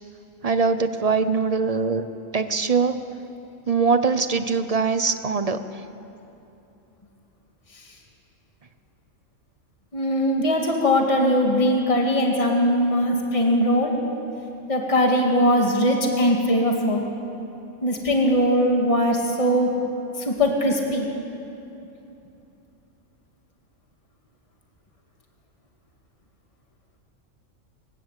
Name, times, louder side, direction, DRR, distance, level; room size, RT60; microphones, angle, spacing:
voice 1, 0.4-2.0 2.3-3.1 3.7-5.8, right 5 dB, 35° right, 10 dB, 0.8 m, -22 dB
voice 2, 9.9-14.0 14.7-17.0 17.8-19.8 20.2-21.1, equal, 25° left, 1 dB, 2.2 m, -20 dB
27.0 x 15.5 x 8.3 m, 2.9 s
omnidirectional pair, 1.4 m